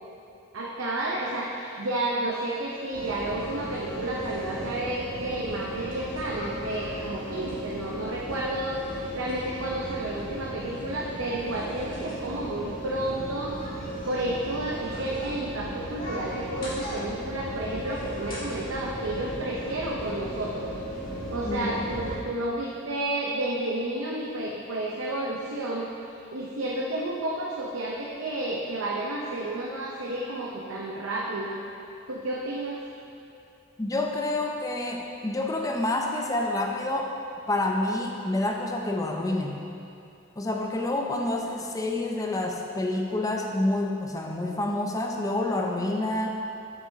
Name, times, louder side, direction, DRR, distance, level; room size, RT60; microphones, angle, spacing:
voice 1, 0.5-13.6 14.0-20.7 21.3-31.6 32.1-32.8 41.5-41.6, right 1 dB, 80° right, -4 dB, 0.7 m, -31 dB
sound 1, 2.9-22.2, equal, 40° left, 1.7 m, -36 dB
voice 2, 33.8-37.1 37.5-39.6 40.4-46.3, left 2 dB, 15° left, 1 dB, 0.4 m, -28 dB
7.7 x 7.5 x 2.7 m, 2.6 s
head